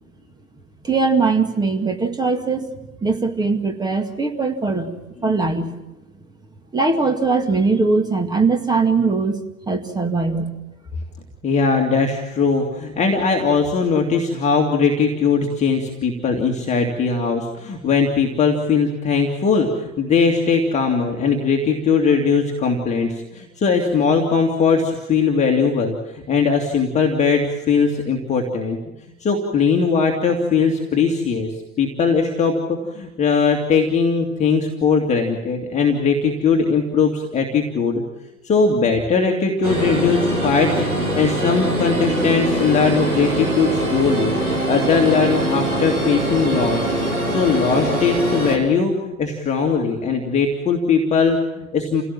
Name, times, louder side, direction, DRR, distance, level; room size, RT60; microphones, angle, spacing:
voice 1, 0.8-2.8 3.0-4.9 5.2-5.7 6.7-10.6, right 4 dB, 10° right, 6 dB, 2.0 m, -20 dB
voice 2, 11.4-28.8 29.2-38.0 38.4-40.7 41.0-44.3 44.7-46.8 47.3-52.0, left 5 dB, 15° left, 1 dB, 2.2 m, -19 dB
sound 1, 39.6-48.6, right 1 dB, 85° right, 5.1 m, -22 dB
28.5 x 17.0 x 7.5 m, 0.98 s
figure-of-eight pair, 100°, 42 cm